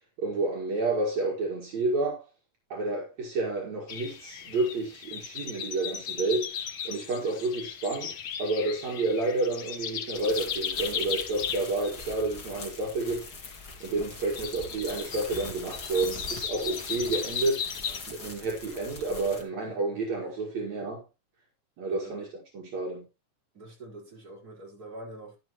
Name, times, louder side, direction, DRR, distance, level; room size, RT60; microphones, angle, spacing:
voice 1, 0.2-2.2 2.7-17.7 18.1-21.0 21.8-23.1, right 2 dB, 60° right, 3.1 m, -30 dB
sound 1, 3.9-18.0, left 8 dB, 60° left, 1.5 m, -37 dB
sound 2, 10.1-19.4, left 3 dB, 35° left, 2.3 m, -43 dB
voice 2, 19.3-19.8 20.2-20.3 21.9-22.2 23.5-25.4, right 1 dB, 30° right, 5.0 m, -46 dB
11.0 x 10.5 x 3.0 m
omnidirectional pair, 3.6 m